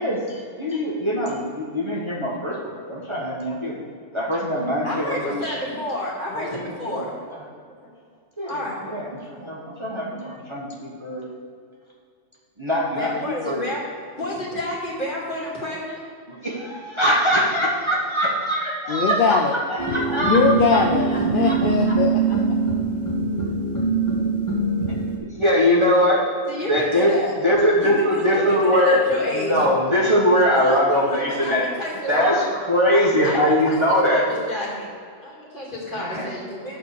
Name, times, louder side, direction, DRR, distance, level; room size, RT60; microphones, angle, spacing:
voice 1, 0.0-3.8 4.1-5.6 6.3-7.0 8.4-11.2 12.6-13.6 16.3-19.4 19.7-20.4 20.7-20.8 21.4-21.6 25.1-26.3 26.6-27.2 27.4-31.6 32.1-34.2 35.9-36.3, equal, 20° right, -5 dB, 1.4 m, -22 dB
voice 2, 4.8-7.1 7.7-7.9 8.4-8.8 9.3-9.4 13.0-13.8 14.2-16.0 26.5-27.3 27.8-29.7 30.5-32.5 32.9-34.9 35.2-36.8, left 1 dB, 35° left, -5 dB, 2.5 m, -30 dB
voice 3, 18.9-19.6 20.2-22.6, left 5 dB, 55° left, 1 dB, 0.6 m, -21 dB
sound 1, 19.8-25.2, right 4 dB, 15° left, 2.2 m, -23 dB
11.0 x 4.4 x 6.8 m, 2.3 s
omnidirectional pair, 1.4 m